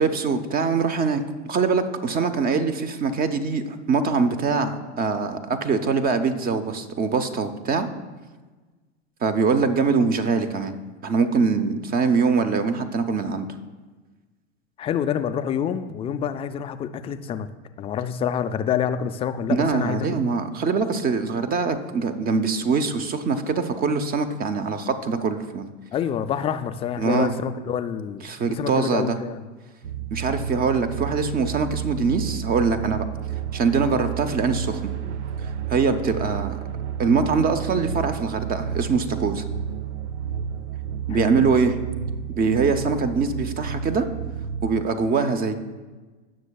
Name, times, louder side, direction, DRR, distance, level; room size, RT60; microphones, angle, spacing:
voice 1, 0.0-7.9 9.2-10.7 11.0-13.5 19.5-25.6 27.0-27.3 28.2-29.2 30.1-33.1 33.5-34.9 35.7-36.6 37.0-39.4 41.1-41.8 42.4-44.1 44.6-45.6, right 5 dB, 25° right, 9 dB, 0.7 m, -23 dB
voice 2, 14.8-17.5 17.8-20.2 25.9-29.4 41.1-41.5, left 8 dB, 20° left, 10 dB, 0.3 m, -27 dB
sound 1, 29.8-44.9, right 8 dB, 80° right, 0.5 m, -31 dB
17.0 x 6.3 x 2.3 m, 1.3 s
hypercardioid pair, 100°, 34 cm